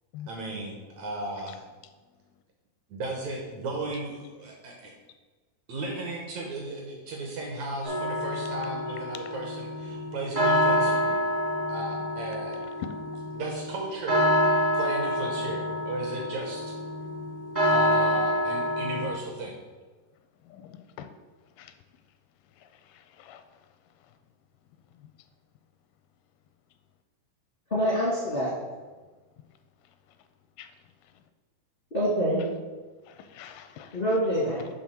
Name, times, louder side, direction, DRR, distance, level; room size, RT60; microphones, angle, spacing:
voice 1, 0.3-1.6 2.9-4.9 5.7-11.2 11.7-12.6 13.3-14.3 14.7-16.7 17.7-19.6, right 2 dB, 75° right, 0 dB, 1.7 m, -35 dB
sound 1, 7.8-19.1, equal, 35° right, 0.5 m, -27 dB
voice 2, 20.5-21.1 21.6-21.7 22.6-23.4 30.6-30.7 33.1-34.0, left 10 dB, 85° left, 9 dB, 2.4 m, -46 dB
voice 3, 27.7-28.5 31.9-32.4 33.9-34.6, equal, 55° left, -7 dB, 0.6 m, -25 dB
8.0 x 3.6 x 6.1 m, 1.3 s
omnidirectional pair, 4.4 m